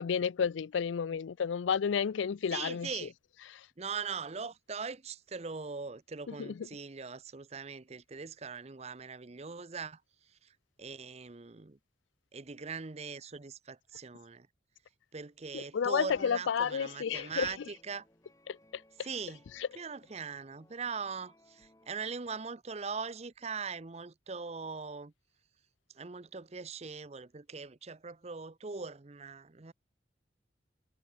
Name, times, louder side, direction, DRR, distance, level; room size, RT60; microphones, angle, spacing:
voice 1, 0.0-2.9 3.5-3.7 6.3-6.7 15.5-17.5 18.5-18.8 19.6-19.7, left 7 dB, 90° left, 0.4 m, -31 dB
voice 2, 2.5-3.1 3.8-11.8 12.3-14.5 15.1-18.1 19.0-19.4 19.8-25.1 25.9-29.7, right 5 dB, 35° right, 0.7 m, -41 dB
sound 1, 16.7-21.9, left 1 dB, 15° left, 3.7 m, -65 dB
head